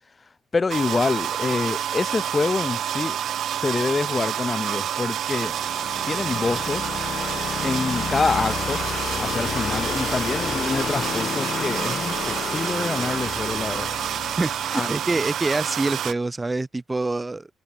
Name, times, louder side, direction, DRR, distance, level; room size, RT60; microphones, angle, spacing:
voice 1, 0.5-3.2 3.6-5.6 6.1-6.8 7.6-8.8 9.2-13.9 14.7-14.9, left 4 dB, 30° left, 0.9 m, -26 dB
sound 1, 0.7-16.1, right 10 dB, 70° right, 4.2 m, -28 dB
sound 2, 5.2-15.0, left 8 dB, 55° left, 1.6 m, -31 dB
voice 2, 14.4-17.5, right 2 dB, 20° right, 3.0 m, -26 dB
cardioid pair, 90°, 0 cm